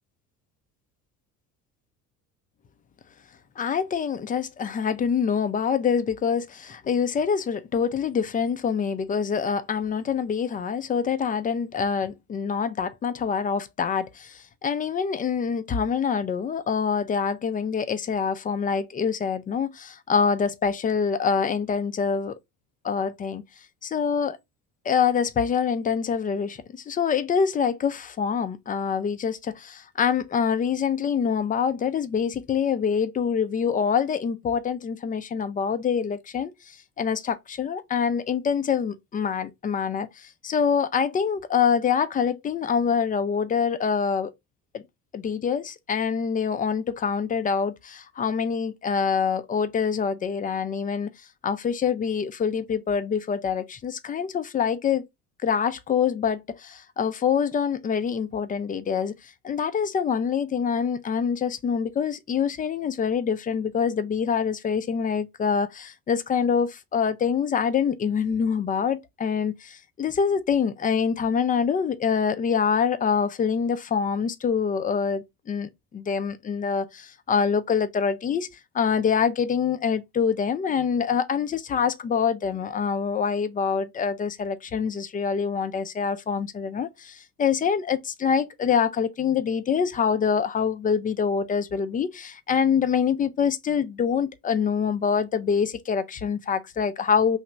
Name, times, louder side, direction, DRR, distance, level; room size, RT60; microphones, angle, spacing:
voice 1, 3.6-22.4 22.8-23.4 23.8-24.4 24.8-44.3 44.7-44.8 45.1-51.1 51.4-55.0 55.4-78.5 78.7-97.4, left 6 dB, 20° left, 0.4 m, -25 dB
2.9 x 2.4 x 4.2 m
hypercardioid pair, 65°, 46 cm